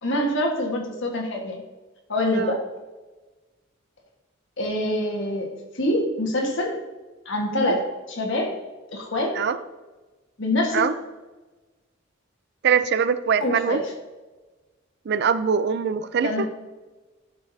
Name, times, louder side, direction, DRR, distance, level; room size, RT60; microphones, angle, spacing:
voice 1, 0.0-1.6 2.1-2.6 4.6-6.8 7.2-8.6 8.9-9.4 10.4-10.8 13.4-13.8 16.2-16.5, left 1 dB, 65° left, 1 dB, 1.5 m, -25 dB
voice 2, 12.6-13.8 15.1-16.5, right 6 dB, 55° right, 13 dB, 0.4 m, -23 dB
12.0 x 5.9 x 2.7 m, 1.2 s
head